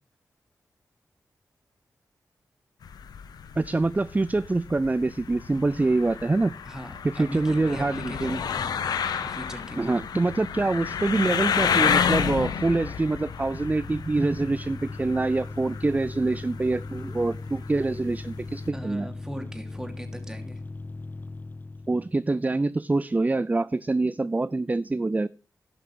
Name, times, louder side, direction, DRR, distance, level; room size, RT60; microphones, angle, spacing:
sound 1, 2.8-18.7, left 7 dB, 90° left, 0.8 m, -31 dB
voice 1, 3.6-6.5 7.1-8.4 9.8-19.1 21.9-25.3, right 2 dB, 25° right, 17 dB, 0.4 m, -25 dB
voice 2, 6.7-8.8 9.2-9.9 18.7-20.6, equal, 10° right, 6 dB, 2.8 m, -39 dB
sound 2, 12.4-22.2, left 3 dB, 25° left, 0.6 m, -39 dB
12.0 x 6.0 x 6.1 m, 0.38 s
cardioid pair, 45°, 7 cm